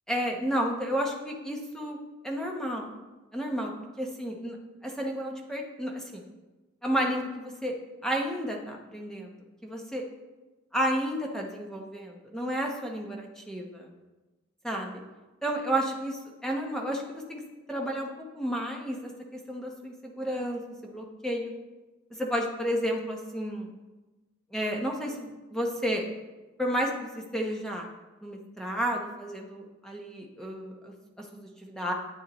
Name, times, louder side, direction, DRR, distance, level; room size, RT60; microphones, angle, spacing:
voice 1, 0.1-2.0 2.2-2.9 3.3-3.7 4.0-4.6 4.8-6.2 6.8-7.8 8.0-9.4 9.6-10.0 10.7-13.9 14.6-14.9 15.4-17.4 17.7-18.1 18.3-21.5 22.2-23.7 24.5-26.0 26.6-27.8 28.2-30.9 31.3-31.9, equal, 5° left, 0 dB, 0.9 m, -31 dB
10.5 x 8.2 x 3.0 m, 1.1 s
head